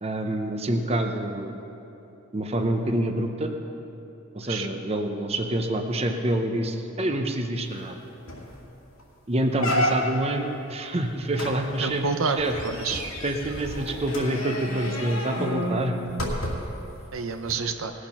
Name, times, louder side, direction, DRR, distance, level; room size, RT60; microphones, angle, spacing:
voice 1, 0.0-1.6 2.3-3.5 4.3-8.0 9.3-12.5 13.2-16.0, right 1 dB, 30° right, 4 dB, 0.7 m, -27 dB
sound 1, 7.8-7.9 8.3-8.6 9.0-9.1 9.6-10.3 11.3-16.8 17.4-17.5, equal, 85° left, 2.2 m, -30 dB
voice 2, 11.8-13.0 17.1-17.9, right 5 dB, 70° right, 7 dB, 0.7 m, -29 dB
19.5 x 6.5 x 5.8 m, 2.9 s
head